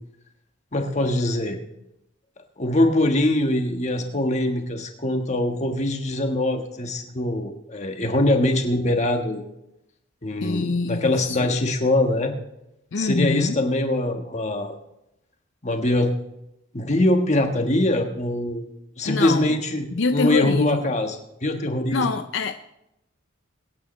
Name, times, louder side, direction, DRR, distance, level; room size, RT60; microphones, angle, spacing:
voice 1, 0.7-1.6 2.6-9.4 10.2-12.3 13.0-14.7 15.6-16.1 16.7-18.7 19.0-21.1 21.4-22.0, left 1 dB, 35° left, 4 dB, 1.4 m, -23 dB
voice 2, 10.4-11.6 12.9-13.6 19.0-19.6 19.9-20.9 21.9-22.5, left 4 dB, 65° left, 9 dB, 0.5 m, -25 dB
23.5 x 9.4 x 3.2 m, 0.86 s
head